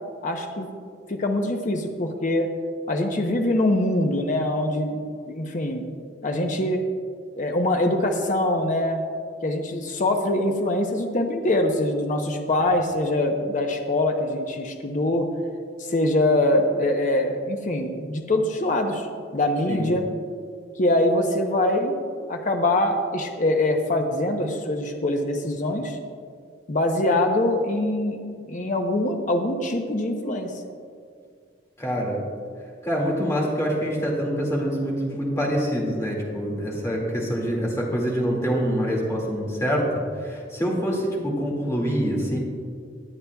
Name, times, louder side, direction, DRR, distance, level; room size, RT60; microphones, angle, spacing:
voice 1, 0.2-0.7 1.1-2.5 2.9-5.0 5.3-5.8 6.2-6.8 7.4-9.0 9.4-15.3 15.8-19.1 19.3-20.1 20.8-21.9 22.3-26.0 26.7-28.2 28.5-30.5, left 1 dB, 45° left, 4 dB, 0.8 m, -23 dB
voice 2, 31.8-32.2 32.8-39.9 40.2-42.4, equal, 15° left, -2 dB, 2.1 m, -25 dB
19.5 x 8.5 x 2.3 m, 2.1 s
head